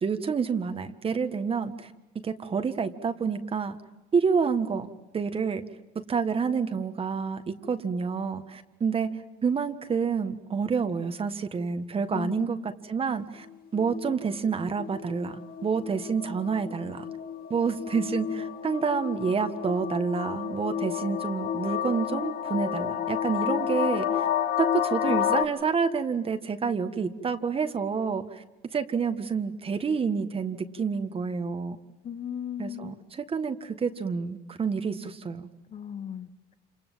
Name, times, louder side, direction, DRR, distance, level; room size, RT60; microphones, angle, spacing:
voice 1, 0.0-1.9 2.2-3.8 4.1-5.6 6.1-9.1 9.4-13.4 13.7-17.0 17.5-24.3 24.6-28.4 28.7-31.8 32.6-35.5, right 5 dB, 35° right, 8 dB, 1.6 m, -28 dB
voice 2, 12.1-12.5 32.0-33.0 35.7-36.3, left 9 dB, 45° left, 12 dB, 1.2 m, -36 dB
sound 1, 13.5-25.4, left 9 dB, 60° left, 2.2 m, -31 dB
28.5 x 27.5 x 7.5 m, 1.0 s
cardioid pair, 110°, 17 cm